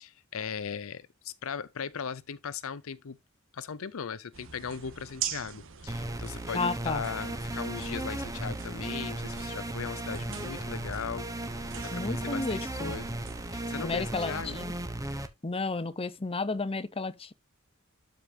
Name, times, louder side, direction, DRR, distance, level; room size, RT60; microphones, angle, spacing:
voice 1, 0.0-3.2 3.5-13.1 13.5-14.5, left 6 dB, 65° left, 0.6 m, -38 dB
sound 1, 4.3-13.7, right 8 dB, 65° right, 1.5 m, -44 dB
sound 2, 5.9-15.3, right 1 dB, 15° right, 1.0 m, -36 dB
voice 2, 6.5-7.0 11.9-12.9 13.8-14.7 15.4-17.3, left 3 dB, 25° left, 0.8 m, -32 dB
12.5 x 5.1 x 2.8 m
head